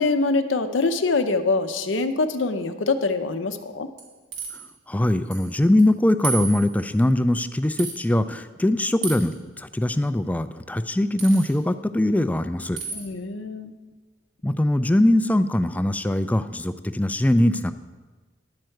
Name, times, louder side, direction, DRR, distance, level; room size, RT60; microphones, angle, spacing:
voice 1, 0.0-3.9 12.9-13.7, left 3 dB, 75° left, 9 dB, 0.6 m, -24 dB
sound 1, 4.0-4.7 5.3-5.5 5.8-5.9 6.2-6.9 7.8-8.0 9.0-9.4 11.2-11.5 12.8-13.1, right 5 dB, 80° right, 2.2 m, -32 dB
voice 2, 4.9-12.8 14.4-17.7, left 1 dB, 10° left, 11 dB, 0.3 m, -21 dB
10.5 x 4.5 x 7.7 m, 1.3 s
head